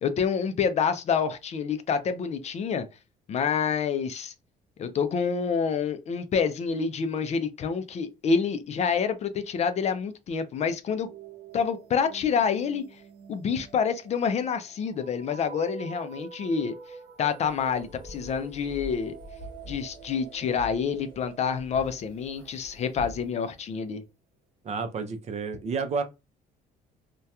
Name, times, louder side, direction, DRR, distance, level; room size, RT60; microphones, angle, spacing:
voice 1, 0.0-2.9 3.3-4.3 4.8-11.1 11.5-12.8 13.3-16.7 17.2-19.1 19.7-24.0, left 6 dB, 40° left, 0.4 m, -27 dB
sound 1, 11.0-23.8, right 5 dB, 90° right, 0.8 m, -47 dB
sound 2, 17.4-23.3, equal, 25° left, 1.0 m, -46 dB
voice 2, 24.6-26.0, right 5 dB, 40° right, 0.5 m, -30 dB
2.7 x 2.2 x 2.2 m
cardioid pair, 110°, 17 cm